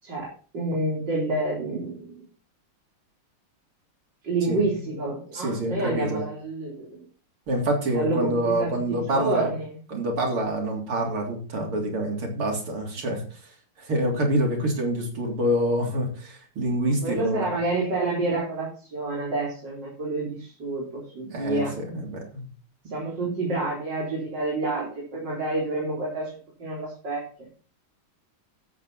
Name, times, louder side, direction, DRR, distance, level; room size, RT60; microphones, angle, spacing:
voice 1, 0.0-2.2 4.2-7.0 7.9-9.8 17.0-21.7 22.9-26.3 26.6-27.2, right 2 dB, 55° right, -4 dB, 4.5 m, -28 dB
voice 2, 5.3-6.2 7.5-9.5 9.9-13.2 13.8-17.5 21.3-22.5 22.9-23.0, right 1 dB, 85° right, 0 dB, 4.3 m, -26 dB
13.5 x 8.5 x 4.3 m, 0.39 s
omnidirectional pair, 2.3 m